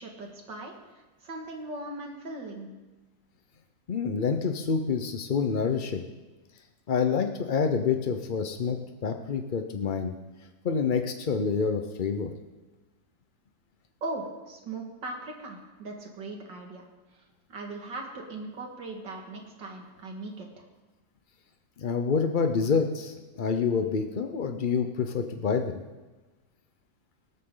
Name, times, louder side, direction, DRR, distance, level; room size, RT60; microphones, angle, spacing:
voice 1, 0.0-2.7 14.0-16.8 17.1-17.2 17.5-20.6, right 2 dB, 90° right, 1 dB, 2.7 m, -39 dB
voice 2, 3.9-6.0 6.9-10.1 10.6-12.3 21.8-25.8, left 5 dB, 60° left, 6 dB, 0.5 m, -27 dB
18.0 x 13.5 x 3.8 m, 1.2 s
omnidirectional pair, 1.9 m